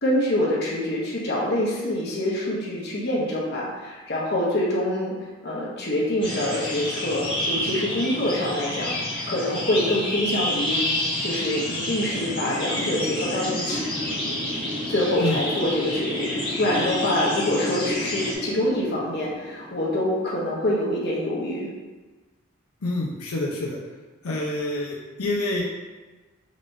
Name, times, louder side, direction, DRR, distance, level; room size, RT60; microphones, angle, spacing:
voice 1, 0.0-5.1 5.4-9.0 9.3-10.8 11.2-13.8 14.9-21.7, left 1 dB, 50° left, -4 dB, 1.0 m, -25 dB
sound 1, 6.2-18.3, left 1 dB, 25° left, 1.2 m, -29 dB
Wind, 12.0-20.7, left 1 dB, 25° right, 0.6 m, -34 dB
voice 2, 22.8-23.8 24.2-25.6, left 2 dB, 90° left, -2 dB, 0.6 m, -27 dB
5.1 x 3.3 x 2.6 m, 1.3 s
head